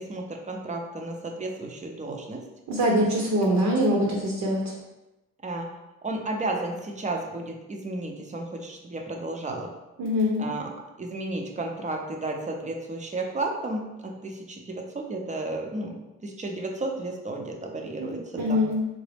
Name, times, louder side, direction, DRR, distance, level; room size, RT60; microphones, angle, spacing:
voice 1, 0.0-2.4 3.0-3.1 5.4-5.7 6.0-9.7 10.4-10.7 11.0-18.6, right 2 dB, 25° right, 2 dB, 0.6 m, -33 dB
voice 2, 2.7-4.6 10.0-10.4 18.0-18.8, equal, 70° right, -2 dB, 0.8 m, -24 dB
3.9 x 2.0 x 3.3 m, 0.98 s
cardioid pair, 90°, 30 cm